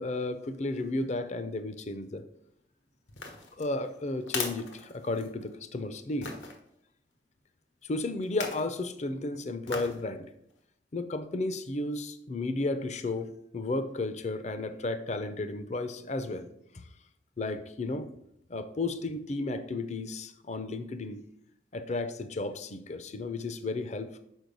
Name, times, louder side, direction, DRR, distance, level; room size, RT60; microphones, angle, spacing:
voice 1, 0.0-2.2 3.6-6.3 7.8-10.3 10.9-13.3 13.5-16.5 16.7-16.8 17.4-18.1 18.5-21.2 21.7-24.2, left 2 dB, 40° left, 10 dB, 0.5 m, -33 dB
sound 1, 3.1-5.5 6.2-6.6 8.2-8.7 9.7-10.0 10.5-10.6, left 4 dB, 85° left, 1.1 m, -38 dB
6.3 x 4.5 x 5.3 m, 0.74 s
head